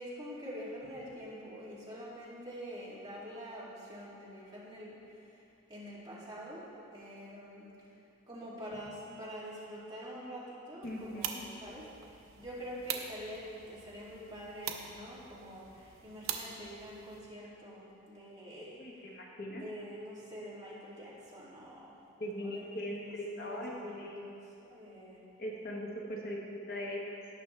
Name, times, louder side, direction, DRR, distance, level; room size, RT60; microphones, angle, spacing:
voice 1, 0.0-4.9 5.7-6.7 6.9-7.7 8.3-11.9 12.4-15.6 16.0-18.8 19.5-21.9 22.4-25.2, equal, 20° right, -8 dB, 2.3 m, -45 dB
voice 2, 10.8-11.6 18.6-19.6 22.2-23.7 24.0-24.2 25.4-27.2, left 1 dB, 45° left, -2 dB, 1.0 m, -40 dB
sound 1, 10.8-17.2, right 7 dB, 70° right, 0.8 m, -44 dB
17.5 x 6.0 x 3.2 m, 2.7 s
head